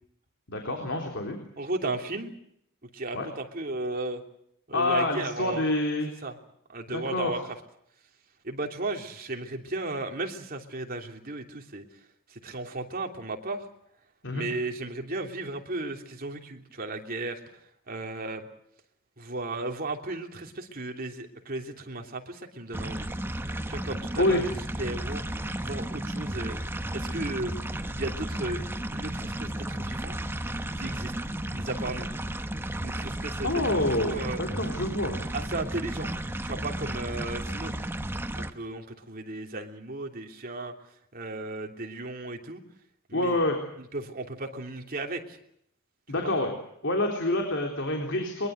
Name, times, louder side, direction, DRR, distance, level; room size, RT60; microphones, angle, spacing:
voice 1, 0.5-1.4 3.1-3.3 4.7-6.1 6.9-7.3 14.2-14.4 24.2-24.4 33.4-35.2 43.1-43.6 46.1-46.5 46.8-48.5, left 1 dB, 60° left, 2 dB, 3.9 m, -27 dB
voice 2, 1.6-2.3 2.8-4.2 4.7-5.6 6.2-6.4 6.7-7.4 8.4-11.8 12.3-13.6 14.3-17.4 17.9-18.5 19.2-23.1 23.7-24.5 24.8-25.2 25.6-26.6 26.9-27.6 27.8-28.7 28.9-30.2 30.8-31.1 31.5-32.1 32.8-34.4 35.3-36.1 36.4-37.8 38.4-40.7 41.1-42.6 43.1-43.4 43.8-45.4 46.1-46.3, right 2 dB, 45° right, 3 dB, 3.1 m, -35 dB
sound 1, 22.7-38.5, right 1 dB, 10° right, 1.1 m, -33 dB
22.5 x 22.5 x 8.0 m, 0.71 s
head